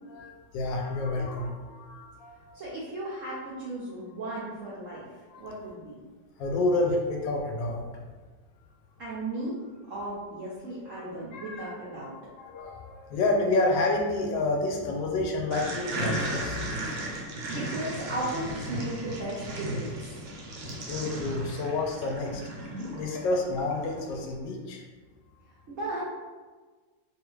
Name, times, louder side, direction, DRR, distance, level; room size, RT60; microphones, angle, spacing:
voice 1, 0.1-2.6 5.4-5.5 6.4-7.9 10.9-11.7 12.0-12.1 12.4-16.8 20.9-22.4 23.0-24.9, left 2 dB, 75° left, 1 dB, 1.2 m, -29 dB
voice 2, 2.5-5.1 5.4-6.0 9.0-9.6 9.9-12.1 17.2-20.1 25.7-26.1, right 1 dB, 70° right, -7 dB, 0.7 m, -36 dB
sound 1, 15.5-24.1, right 1 dB, 90° right, 1.4 m, -35 dB
3.2 x 2.4 x 3.1 m, 1.4 s
omnidirectional pair, 2.1 m